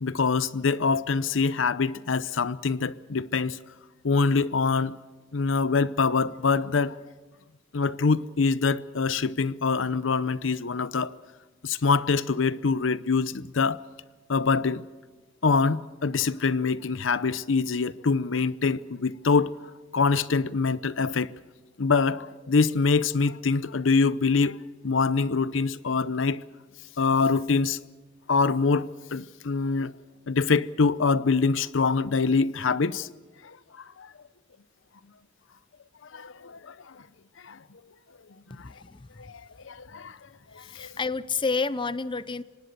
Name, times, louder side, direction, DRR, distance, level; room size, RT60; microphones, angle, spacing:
voice 1, 0.0-3.6 4.0-5.0 5.3-7.0 7.7-11.1 11.6-13.8 14.3-14.8 15.4-19.5 19.9-21.3 21.8-24.6 24.8-26.4 27.0-27.8 28.3-29.9 30.3-33.1 34.0-34.1 36.1-36.9 37.4-37.6 38.6-38.7 39.2-40.2 40.7-40.9, left 4 dB, 75° left, 0.7 m, -24 dB
voice 2, 38.5-39.3 40.5-42.4, left 4 dB, 25° left, 0.6 m, -30 dB
25.0 x 19.0 x 6.7 m
head